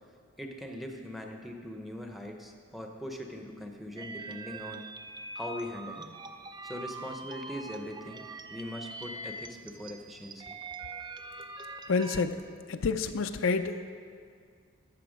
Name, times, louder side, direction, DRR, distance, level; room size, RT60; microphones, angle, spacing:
voice 1, 0.4-4.8 5.4-6.1 6.6-10.6, left 1 dB, ahead, 2 dB, 0.7 m, -41 dB
sound 1, 4.0-12.2, right 3 dB, 20° right, 0.4 m, -43 dB
voice 2, 11.9-12.4 12.7-13.7, left 4 dB, 65° left, 9 dB, 0.4 m, -28 dB
13.5 x 6.8 x 5.1 m, 2.2 s
head